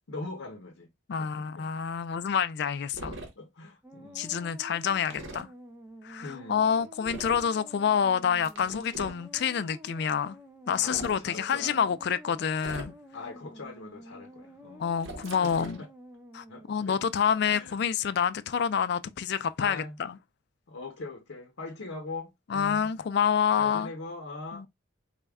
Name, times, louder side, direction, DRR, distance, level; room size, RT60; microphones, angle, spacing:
voice 1, 0.1-0.9 1.2-1.7 3.4-4.3 6.2-6.9 7.2-7.3 10.8-11.9 13.1-14.9 15.4-15.9 16.5-17.0 17.3-17.8 19.6-20.0 20.7-22.9 23.6-24.7, left 3 dB, 90° left, 0.7 m, -41 dB
voice 2, 1.1-3.2 4.1-5.5 6.0-10.4 10.7-12.9 14.8-15.8 16.3-20.2 22.5-23.9 24.5-24.7, left 7 dB, 60° left, 0.3 m, -28 dB
sound 1, 2.9-3.3 5.1-5.4 7.0-7.5 8.4-9.2 10.7-11.2 12.6-13.1 15.0-15.8, right 1 dB, 85° right, 1.0 m, -41 dB
sound 2, 3.8-17.1, equal, 10° right, 0.5 m, -50 dB
4.1 x 2.1 x 3.5 m
head